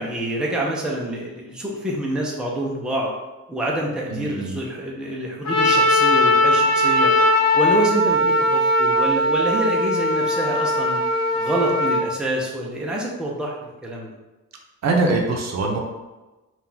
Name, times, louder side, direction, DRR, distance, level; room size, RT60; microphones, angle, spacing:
voice 1, 0.0-3.1 3.5-7.1 7.5-11.0 11.3-14.1, right 1 dB, 5° right, -3 dB, 0.6 m, -26 dB
voice 2, 4.1-4.6 14.8-15.8, right 3 dB, 60° right, 1 dB, 0.7 m, -22 dB
Trumpet, 5.4-12.0, left 1 dB, 60° left, 1.0 m, -19 dB
4.2 x 2.4 x 3.9 m, 1.1 s
wide cardioid pair, 150°, 31 cm